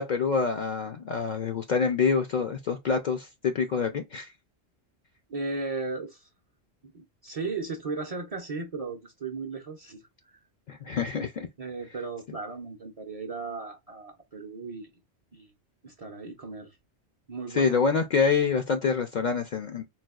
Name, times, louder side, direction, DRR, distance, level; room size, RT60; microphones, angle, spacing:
voice 1, 0.0-4.3 10.7-11.5 17.5-19.8, left 5 dB, 60° left, 0.5 m, -26 dB
voice 2, 5.3-6.3 6.9-10.0 11.6-14.9 15.3-15.5 15.8-16.8 17.3-17.8, right 3 dB, 45° right, 0.5 m, -36 dB
4.0 x 2.3 x 2.3 m
omnidirectional pair, 1.1 m